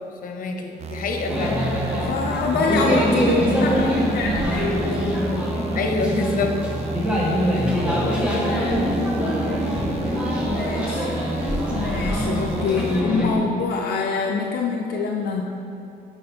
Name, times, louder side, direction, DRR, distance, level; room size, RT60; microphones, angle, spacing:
voice 1, 0.2-1.7 5.7-6.6 7.5-7.7 11.8-12.9, left 3 dB, 60° left, 4 dB, 0.9 m, -27 dB
sound 1, 0.8-13.0, right 3 dB, 40° right, 0.4 m, -32 dB
sound 2, 1.3-13.4, equal, 5° right, 1.3 m, -23 dB
voice 2, 1.9-4.7 8.1-9.0 10.3-11.1 11.7-15.4, left 4 dB, 80° left, 0 dB, 0.5 m, -26 dB
8.6 x 4.7 x 4.3 m, 2.7 s
cardioid pair, 115°, 16 cm